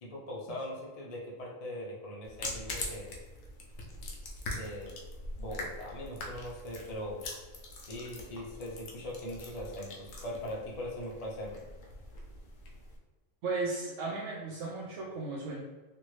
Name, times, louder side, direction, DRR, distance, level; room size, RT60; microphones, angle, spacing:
voice 1, 0.0-3.1 4.5-5.0 5.4-7.2 7.8-11.6, left 1 dB, 40° left, -3 dB, 0.6 m, -40 dB
sound 1, 2.2-13.0, left 2 dB, 65° left, 0.9 m, -43 dB
voice 2, 13.4-15.6, right 3 dB, 70° right, -4 dB, 0.8 m, -35 dB
2.9 x 2.6 x 3.1 m, 1.3 s
omnidirectional pair, 1.4 m